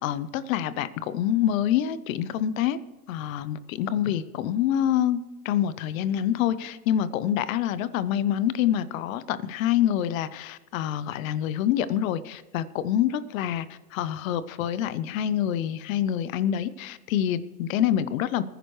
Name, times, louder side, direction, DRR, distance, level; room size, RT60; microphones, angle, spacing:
voice 1, 0.0-2.8 3.1-5.2 5.4-18.4, left 10 dB, 55° left, 16 dB, 0.9 m, -26 dB
20.0 x 10.0 x 3.2 m, 1.1 s
hypercardioid pair, 125°, 47 cm